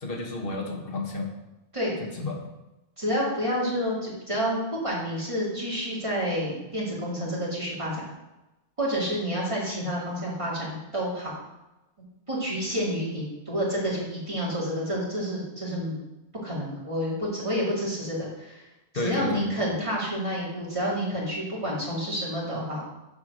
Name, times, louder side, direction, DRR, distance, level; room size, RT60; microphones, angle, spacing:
voice 1, 0.0-1.3 2.0-2.4 18.9-19.5, left 2 dB, 55° left, 1 dB, 1.4 m, -31 dB
voice 2, 3.0-8.1 8.8-11.3 12.3-16.0 16.4-18.6 18.9-22.8, equal, 25° right, -6 dB, 2.7 m, -29 dB
7.4 x 4.7 x 6.4 m, 0.99 s
omnidirectional pair, 1.2 m